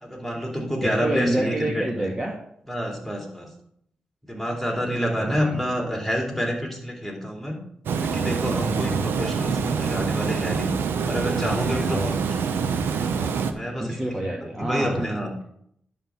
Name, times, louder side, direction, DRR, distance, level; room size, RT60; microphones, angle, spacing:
voice 1, 0.0-2.1 2.7-3.5 4.2-7.6 8.0-10.7 11.0-12.1 13.2-13.9 14.6-15.3, equal, ahead, 0 dB, 3.1 m, -28 dB
voice 2, 0.8-2.3 5.2-5.6 8.7-9.2 11.9-12.1 13.8-15.0, right 1 dB, 20° right, -1 dB, 1.6 m, -28 dB
Water, 7.9-13.5, right 6 dB, 90° right, 0.7 m, -26 dB
10.0 x 3.7 x 7.1 m, 0.70 s
cardioid pair, 60°, 4 cm